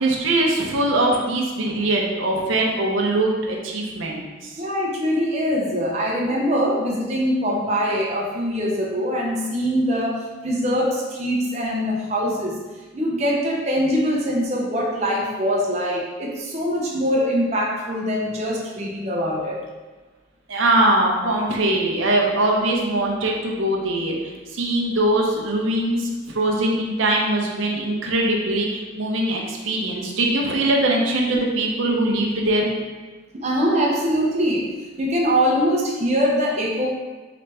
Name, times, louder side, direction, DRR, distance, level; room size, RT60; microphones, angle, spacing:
voice 1, 0.0-4.3 20.5-24.2 24.5-26.1 26.3-32.7, right 1 dB, 80° right, -1 dB, 0.7 m, -21 dB
voice 2, 4.6-12.6 12.9-19.5 33.3-34.7 35.0-36.9, equal, 35° right, -3 dB, 0.6 m, -23 dB
3.9 x 3.3 x 3.3 m, 1.3 s
head